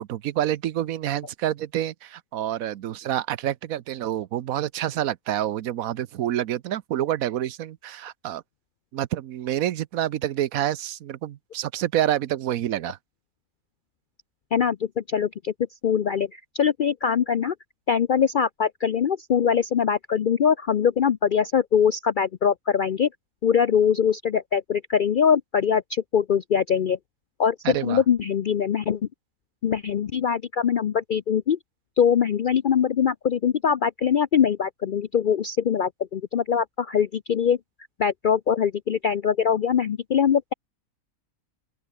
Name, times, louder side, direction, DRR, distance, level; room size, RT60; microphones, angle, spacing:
voice 1, 0.0-8.4 8.9-13.0 27.6-28.0, right 12 dB, 80° right, 1.1 m, -27 dB
voice 2, 14.5-15.5 15.8-17.5 17.9-23.1 23.4-27.0 27.4-29.0 29.6-31.6 32.0-37.6 38.0-40.5, left 7 dB, 65° left, 0.5 m, -22 dB
open air
omnidirectional pair, 1.5 m